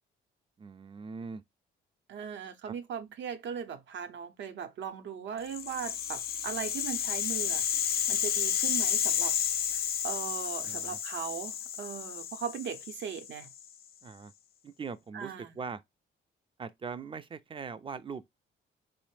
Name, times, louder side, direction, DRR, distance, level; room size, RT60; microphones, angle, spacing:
voice 1, 0.6-1.4 2.7-2.8 10.6-11.0 14.0-14.3 14.6-15.8 16.6-18.3, right 5 dB, 25° right, 0.4 m, -41 dB
voice 2, 2.1-7.6 8.1-9.4 9.7-13.5 15.1-15.5, right 8 dB, 65° right, 0.7 m, -38 dB
Rattle (instrument), 5.5-13.7, left 9 dB, 50° left, 0.4 m, -31 dB
3.3 x 2.0 x 3.1 m
cardioid pair, 90°, 20 cm